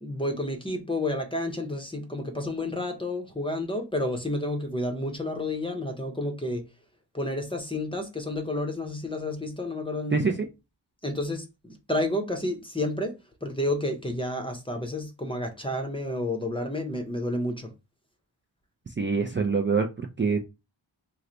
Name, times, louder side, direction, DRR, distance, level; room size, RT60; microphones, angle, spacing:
voice 1, 0.0-6.6 7.1-10.3 11.0-13.1 13.4-17.7, left 1 dB, 10° left, 0.7 m, -30 dB
voice 2, 10.1-10.5 19.0-20.4, right 5 dB, 25° right, 0.4 m, -25 dB
3.1 x 2.1 x 3.8 m
wide cardioid pair, 60°, 44 cm